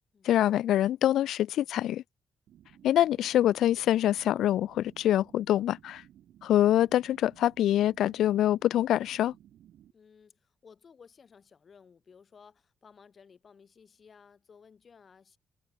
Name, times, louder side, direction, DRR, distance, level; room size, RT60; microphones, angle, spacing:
voice 1, 0.2-2.0 2.8-6.0 6.4-9.3, left 12 dB, 80° left, 0.4 m, -25 dB
sound 1, 2.5-9.9, right 11 dB, 75° right, 3.4 m, -57 dB
voice 2, 9.9-15.4, left 6 dB, 35° left, 2.6 m, -57 dB
cardioid pair, 165°, 0 cm